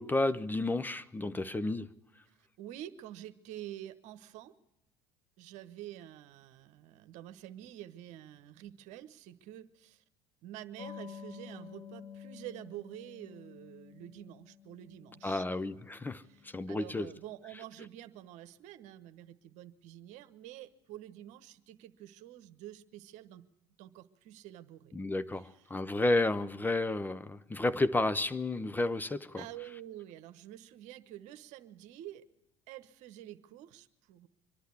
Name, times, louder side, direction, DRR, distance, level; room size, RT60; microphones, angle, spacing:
voice 1, 0.0-1.9 15.2-16.2 16.5-17.1 24.9-29.4, left 2 dB, 15° left, 0.7 m, -31 dB
voice 2, 2.6-4.5 5.4-10.0 10.4-15.4 16.2-23.5 23.8-25.0 25.3-25.7 29.4-32.2 32.7-34.3, right 13 dB, 65° right, 1.1 m, -48 dB
sound 1, 10.8-17.0, left 8 dB, 45° left, 1.4 m, -51 dB
24.5 x 11.5 x 9.6 m
hypercardioid pair, 70°, 13 cm